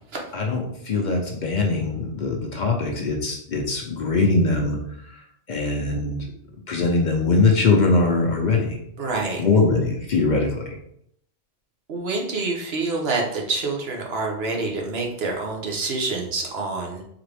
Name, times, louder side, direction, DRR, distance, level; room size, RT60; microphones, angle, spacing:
voice 1, 0.3-4.8 5.5-6.2 6.7-8.8 9.4-10.6, left 3 dB, 50° left, 1 dB, 0.7 m, -21 dB
voice 2, 9.0-9.4 11.9-17.0, right 3 dB, 70° right, 1 dB, 1.1 m, -27 dB
3.9 x 3.4 x 3.3 m, 0.74 s
omnidirectional pair, 1.1 m